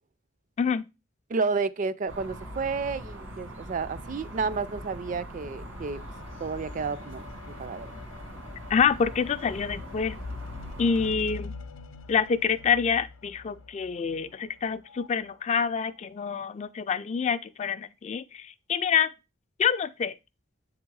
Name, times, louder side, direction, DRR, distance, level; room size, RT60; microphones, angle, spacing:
voice 1, 1.3-6.0 6.4-7.9, right 4 dB, 40° right, 0.4 m, -31 dB
sound 1, 2.1-11.1, equal, 90° right, 1.7 m, -42 dB
sound 2, 5.6-15.1 15.9-16.0, left 3 dB, 90° left, 0.6 m, -45 dB
voice 2, 8.7-10.2 10.8-11.5 12.1-19.1 19.6-20.1, left 6 dB, 35° left, 0.3 m, -27 dB
7.5 x 3.6 x 4.6 m
head